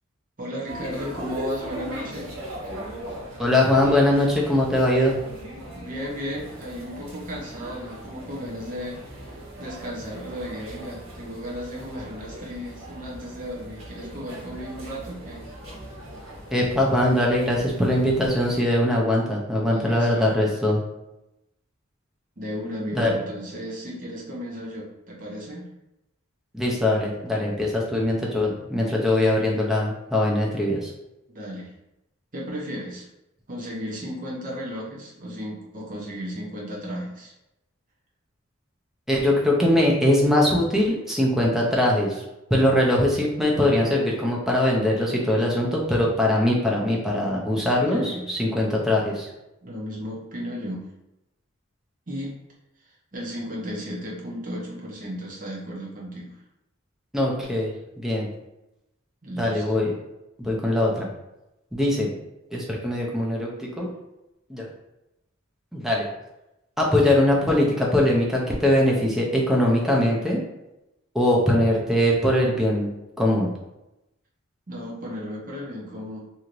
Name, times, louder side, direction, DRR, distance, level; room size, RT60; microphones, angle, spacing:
voice 1, 0.4-2.3 5.7-9.0 9.6-15.5 19.7-20.3 22.4-25.7 31.3-31.7 32.3-33.1 33.5-37.3 47.9-48.2 49.6-50.9 52.1-52.4 53.1-56.4 59.2-59.7 74.7-76.2, equal, 40° right, -3 dB, 0.8 m, -34 dB
sound 1, 0.7-18.6, right 1 dB, 80° right, 1.0 m, -39 dB
voice 2, 3.4-5.2 16.5-20.8 22.9-23.1 26.5-30.9 39.1-42.2 42.5-49.3 57.1-57.7 58.0-58.3 59.4-59.9 60.4-61.1 61.7-62.1 62.5-63.9 64.5-64.7 65.7-66.0 66.8-70.4 71.1-72.9 73.2-73.5, left 1 dB, ahead, -3 dB, 0.5 m, -21 dB
3.1 x 2.8 x 2.5 m, 0.92 s
head